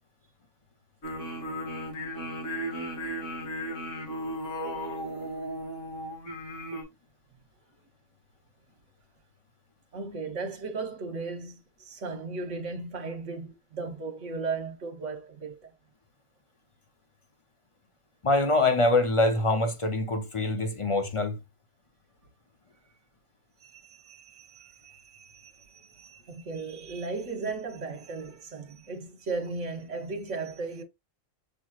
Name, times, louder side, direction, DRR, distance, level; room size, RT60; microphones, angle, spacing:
sound 1, 1.0-6.8, equal, 65° left, 2.2 m, -35 dB
voice 1, 9.9-15.7 23.6-30.8, right 4 dB, 65° right, 1.4 m, -36 dB
voice 2, 18.2-21.4, left 2 dB, 40° left, 0.4 m, -24 dB
6.8 x 3.0 x 2.3 m
omnidirectional pair, 1.4 m